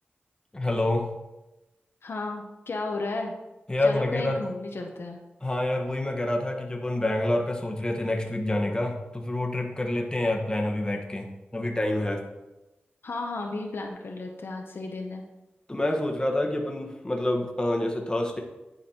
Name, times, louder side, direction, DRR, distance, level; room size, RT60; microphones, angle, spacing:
voice 1, 0.5-1.1 3.7-4.4 5.4-12.2 15.7-18.4, left 1 dB, 20° left, 1 dB, 1.2 m, -27 dB
voice 2, 2.0-3.3 3.8-5.2 13.0-15.2, left 3 dB, 70° left, 2 dB, 0.9 m, -33 dB
10.0 x 4.1 x 4.3 m, 1.0 s
wide cardioid pair, 70°, 4 cm